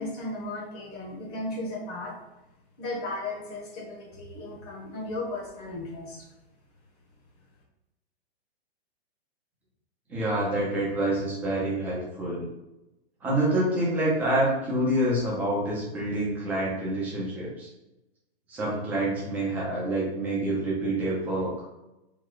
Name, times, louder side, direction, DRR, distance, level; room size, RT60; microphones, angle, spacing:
voice 1, 0.0-2.1 2.8-6.3, left 2 dB, 35° left, -1 dB, 1.0 m, -35 dB
voice 2, 10.1-12.5 13.2-17.7 18.5-21.5, right 1 dB, 5° right, -7 dB, 0.4 m, -27 dB
3.2 x 2.3 x 3.8 m, 0.95 s
hypercardioid pair, 150°, 32 cm